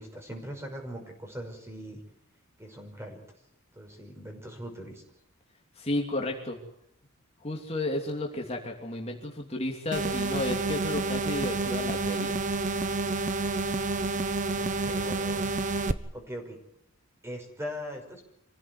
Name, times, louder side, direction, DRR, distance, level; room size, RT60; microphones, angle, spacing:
voice 1, 0.0-2.0 2.6-3.2 3.7-5.0 14.6-15.5 16.1-16.6 17.2-18.2, equal, 15° right, 3 dB, 5.7 m, -40 dB
voice 2, 5.8-6.6 7.4-12.3, left 1 dB, 30° left, 0 dB, 2.9 m, -32 dB
sound 1, 9.9-15.9, right 3 dB, 40° right, 1.1 m, -29 dB
26.0 x 16.5 x 9.6 m, 0.77 s
head